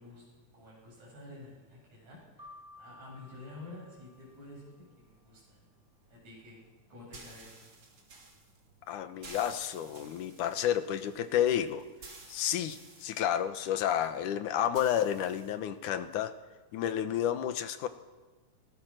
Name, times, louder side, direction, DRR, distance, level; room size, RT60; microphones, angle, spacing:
voice 1, 0.0-2.5 2.8-5.6 6.1-6.6 6.9-7.6, left 2 dB, 65° right, -3 dB, 9.5 m, -50 dB
Keyboard (musical), 2.4-4.9, left 2 dB, 10° right, 7.8 m, -55 dB
sound 1, 4.1-15.5, right 3 dB, 45° right, 3.9 m, -55 dB
voice 2, 8.9-11.8 12.3-16.3 16.7-17.9, left 10 dB, 85° left, 10 dB, 2.6 m, -31 dB
22.0 x 19.5 x 6.5 m, 1.3 s
omnidirectional pair, 3.5 m